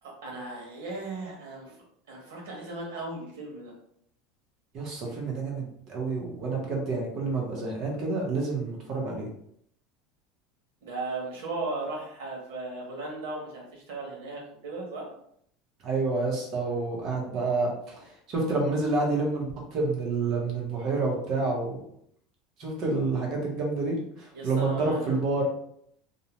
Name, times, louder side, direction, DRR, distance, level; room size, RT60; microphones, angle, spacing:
voice 1, 0.0-3.7 10.8-15.1 24.3-25.2, right 2 dB, 85° right, -1 dB, 1.1 m, -37 dB
voice 2, 4.7-9.3 15.8-21.8 22.6-25.5, right 3 dB, 45° right, -1 dB, 0.9 m, -29 dB
2.7 x 2.1 x 2.9 m, 0.69 s
supercardioid pair, 145°, 0 cm